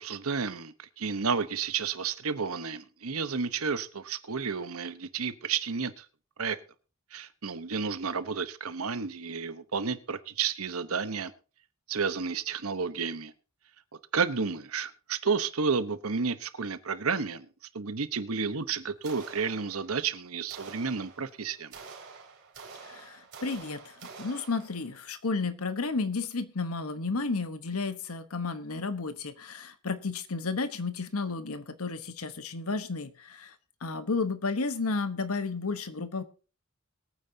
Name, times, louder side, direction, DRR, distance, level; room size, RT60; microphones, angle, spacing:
voice 1, 0.0-6.0 6.4-6.6 7.1-11.3 11.9-13.3 14.1-17.5 17.7-21.7, right 5 dB, 80° right, 1.0 m, -31 dB
sound 1, 19.0-20.1 20.5-25.0, right 5 dB, 55° right, 4.1 m, -48 dB
voice 2, 22.8-33.5 33.8-36.2, left 4 dB, 90° left, 1.1 m, -32 dB
22.5 x 9.1 x 2.8 m
head